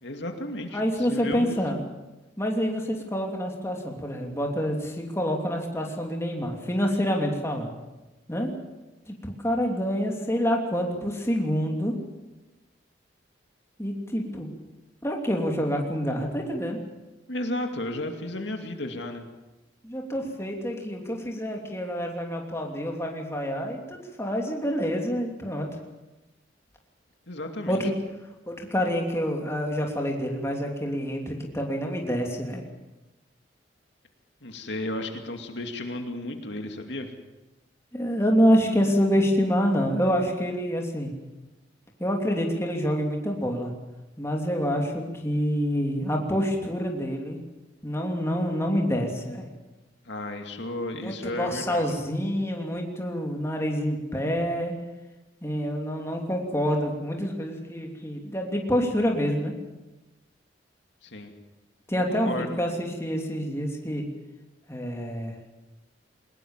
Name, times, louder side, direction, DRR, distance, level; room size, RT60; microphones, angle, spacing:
voice 1, 0.0-1.6 17.3-19.2 27.3-27.8 34.4-37.1 50.0-51.9 61.0-61.3 62.0-62.6, left 1 dB, 70° left, 4 dB, 2.4 m, -33 dB
voice 2, 0.7-1.8 2.4-7.7 8.3-8.5 9.1-11.9 13.8-14.5 15.0-16.8 19.8-25.7 27.7-27.9 28.5-32.6 37.9-41.1 42.0-43.7 44.2-47.4 47.8-49.5 51.0-54.7 55.4-59.5 61.9-64.0 64.7-65.3, equal, 15° left, 1 dB, 3.0 m, -27 dB
22.0 x 20.5 x 7.4 m, 1.0 s
head